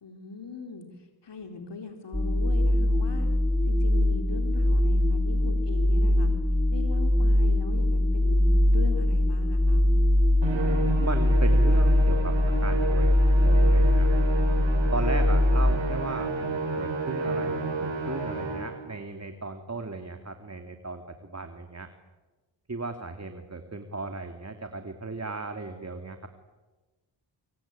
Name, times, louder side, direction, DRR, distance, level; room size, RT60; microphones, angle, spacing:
voice 1, 0.0-0.9 1.2-3.3 3.7-6.3 6.7-9.9, left 4 dB, 65° left, 4 dB, 3.9 m, -40 dB
sound 1, 2.1-15.7, left 1 dB, 10° left, 4.1 m, -22 dB
Musical instrument, 10.4-18.9, right 3 dB, 75° right, 7.6 m, -31 dB
voice 2, 11.0-14.1 14.9-21.9 22.7-26.3, right 3 dB, 35° right, 6 dB, 2.7 m, -36 dB
25.5 x 25.0 x 8.9 m, 1.2 s
cardioid pair, 65°, 46 cm